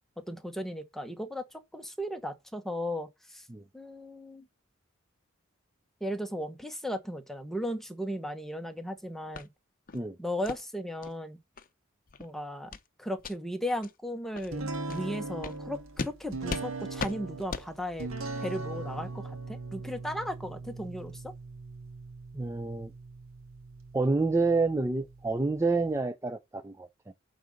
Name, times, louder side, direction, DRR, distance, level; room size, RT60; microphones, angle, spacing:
voice 1, 0.3-1.4 1.7-3.4 3.7-4.4 6.0-9.5 10.2-11.4 12.2-12.7 13.0-18.1 18.4-21.3, equal, ahead, 1.0 m, -36 dB
sound 1, 9.3-9.5 9.9-10.0 10.4-10.6 11.0-11.1 11.6-11.7 12.1-12.3 12.7-12.9 13.2-13.3 13.8-13.9 14.3-14.5 14.9-15.0 15.4-15.6 16.0-16.1 16.5-16.7 17.0-17.1 17.5-17.7, left 4 dB, 45° left, 0.7 m, -37 dB
sound 2, 14.5-26.0, right 3 dB, 80° right, 1.6 m, -40 dB
voice 2, 22.3-22.9 23.9-26.9, right 3 dB, 15° right, 0.4 m, -28 dB
8.9 x 3.9 x 6.3 m
head